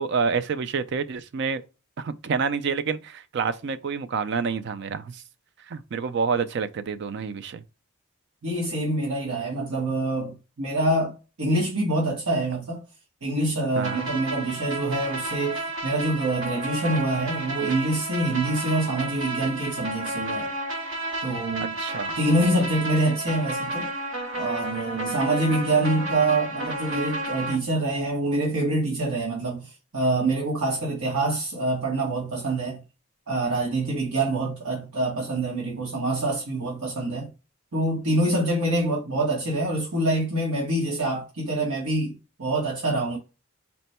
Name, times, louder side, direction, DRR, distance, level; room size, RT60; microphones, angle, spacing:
voice 1, 0.0-1.6 2.0-5.2 5.7-7.6 13.8-14.1 21.8-22.1, right 5 dB, 50° right, 0.4 m, -28 dB
voice 2, 8.4-11.1 11.4-12.8 13.2-20.5 21.2-21.7 22.2-23.9 24.4-32.8 33.3-37.3 37.7-43.2, right 2 dB, 90° right, 1.3 m, -25 dB
sound 1, 13.8-27.5, right 1 dB, 70° right, 1.3 m, -32 dB
4.2 x 2.2 x 4.1 m
head